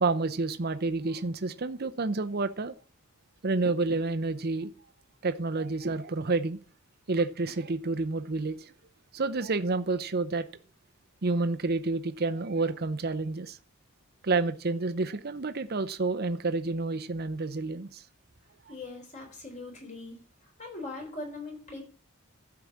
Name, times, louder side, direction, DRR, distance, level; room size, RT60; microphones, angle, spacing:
voice 1, 0.0-2.7 3.4-4.7 5.2-6.6 7.1-8.7 9.1-10.5 11.2-13.6 14.2-18.0, right 3 dB, 45° right, 9 dB, 0.7 m, -29 dB
voice 2, 18.7-21.8, left 2 dB, 35° left, 1 dB, 4.1 m, -41 dB
12.5 x 4.9 x 7.3 m, 0.41 s
head